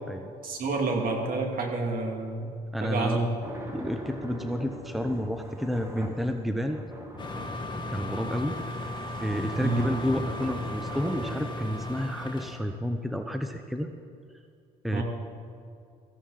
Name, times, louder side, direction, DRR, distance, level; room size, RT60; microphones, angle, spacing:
voice 1, 0.4-2.5 2.8-3.3 9.6-9.9 14.9-15.0, right 3 dB, 55° right, 2 dB, 2.7 m, -28 dB
voice 2, 2.7-3.2 3.7-6.8 7.6-8.9 9.2-13.9 14.8-15.0, equal, ahead, 6 dB, 0.9 m, -30 dB
sound 1, 3.4-11.5, equal, 15° right, 2.3 m, -42 dB
sound 2, 7.2-12.6, left 1 dB, 25° left, 2.0 m, -36 dB
16.5 x 14.5 x 4.2 m, 2.4 s
supercardioid pair, 70°, 17 cm